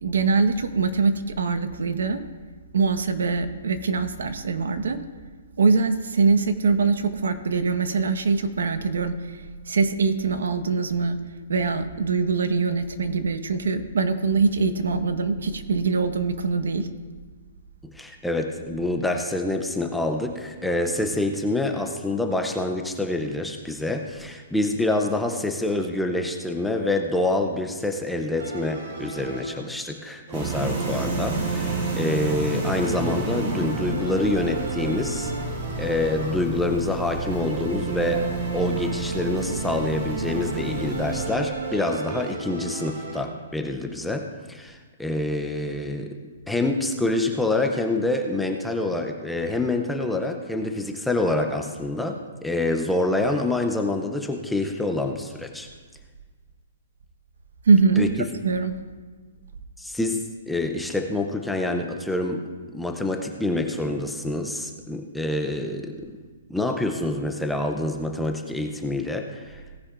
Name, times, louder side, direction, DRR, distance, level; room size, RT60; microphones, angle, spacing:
voice 1, 0.0-2.2 2.7-5.0 5.6-9.4 9.7-11.2 11.5-16.9 57.7-58.1 58.4-58.8, right 4 dB, 90° right, 9 dB, 1.1 m, -23 dB
voice 2, 17.8-35.3 35.8-38.3 38.5-46.2 46.5-55.7 58.0-58.1 59.8-60.2 60.5-66.1 66.5-69.6, left 2 dB, ahead, 3 dB, 0.5 m, -26 dB
sound 1, 28.4-29.9 30.3-36.7 37.1-43.6, right 5 dB, 50° right, 1.6 m, -33 dB
sound 2, 30.3-41.3, right 1 dB, 30° right, 1.9 m, -31 dB
17.5 x 10.0 x 2.5 m, 1.4 s
hypercardioid pair, 180°, 0 cm